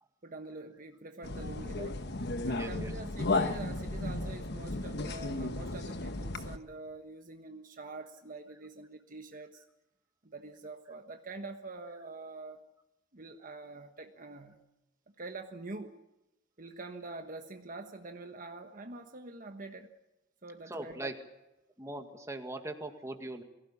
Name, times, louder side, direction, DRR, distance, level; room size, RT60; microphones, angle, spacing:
voice 1, 0.2-2.0 2.5-9.6 10.2-12.6 13.1-14.6 15.2-16.0 16.6-19.9 20.4-21.1, right 3 dB, 45° right, 5 dB, 1.3 m, -45 dB
sound 1, 1.2-6.6, left 2 dB, 60° left, 1.3 m, -34 dB
voice 2, 2.5-2.9 20.7-21.2 21.8-23.4, right 2 dB, 15° right, 5 dB, 2.0 m, -40 dB
23.0 x 16.5 x 8.6 m, 0.98 s
head